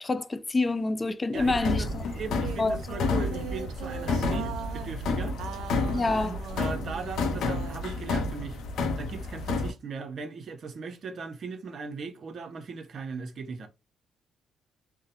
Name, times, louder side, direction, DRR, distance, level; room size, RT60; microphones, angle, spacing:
voice 1, 0.0-2.0 2.3-2.8 5.9-6.3, left 3 dB, 25° left, 0.4 m, -27 dB
voice 2, 1.3-5.4 6.1-8.6 9.0-13.7, right 4 dB, 55° right, 0.7 m, -38 dB
sound 1, 1.3-5.0 5.4-8.2, right 8 dB, 80° right, 0.3 m, -42 dB
sound 2, 1.4-9.7, left 3 dB, 80° left, 0.6 m, -30 dB
3.6 x 2.1 x 2.8 m
cardioid pair, 90°, 0 cm